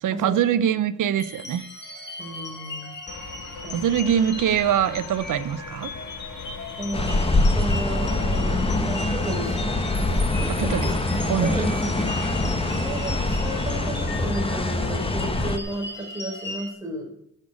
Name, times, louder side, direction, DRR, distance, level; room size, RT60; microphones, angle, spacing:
voice 1, 0.0-1.7 3.7-5.9 10.6-10.9 11.3-11.7, right 9 dB, 85° right, 15 dB, 0.7 m, -23 dB
sound 1, 1.2-16.7, left 2 dB, 35° left, 2.4 m, -38 dB
voice 2, 2.2-2.9 3.6-3.8 6.8-7.3 7.5-10.7 11.4-17.1, right 1 dB, 10° right, -2 dB, 4.6 m, -34 dB
sound 2, 3.1-14.7, left 4 dB, 70° left, 2.4 m, -41 dB
sound 3, 6.9-15.6, left 2 dB, 20° left, 1.1 m, -24 dB
10.0 x 6.7 x 8.4 m, 0.74 s
wide cardioid pair, 115°, 30 cm